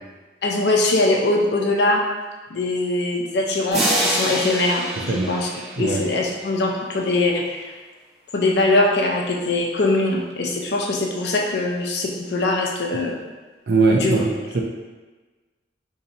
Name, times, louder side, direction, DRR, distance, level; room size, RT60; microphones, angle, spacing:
voice 1, 0.4-2.0 2.5-5.5 5.8-7.7 8.3-13.2 13.9-14.2, left 2 dB, 65° left, 0 dB, 0.5 m, -22 dB
sound 1, 3.7-6.5, right 1 dB, 35° right, 0.9 m, -26 dB
voice 2, 13.7-14.6, right 3 dB, 60° right, 1 dB, 0.5 m, -20 dB
2.7 x 2.6 x 4.1 m, 1.3 s
head